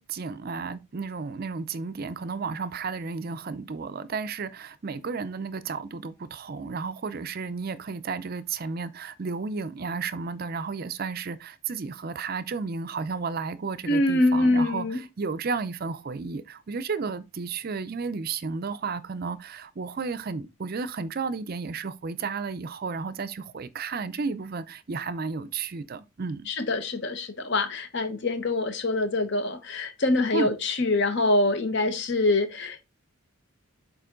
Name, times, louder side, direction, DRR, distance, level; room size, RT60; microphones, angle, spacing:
voice 1, 0.0-26.5 30.3-30.5, right 4 dB, 45° right, 0.5 m, -33 dB
voice 2, 13.9-15.0 26.5-32.9, left 2 dB, 55° left, 1.0 m, -25 dB
6.8 x 4.4 x 3.7 m
head